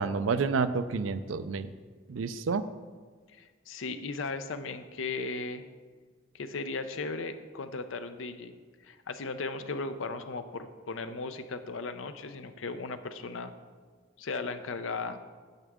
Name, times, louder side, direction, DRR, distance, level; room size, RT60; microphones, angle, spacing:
voice 1, 0.0-1.7 2.1-2.7, right 4 dB, 85° right, 12 dB, 0.5 m, -29 dB
voice 2, 3.3-5.7 6.3-8.5 8.8-13.5 14.2-15.2, left 3 dB, 80° left, 9 dB, 0.6 m, -36 dB
9.3 x 8.1 x 3.6 m, 1.5 s
head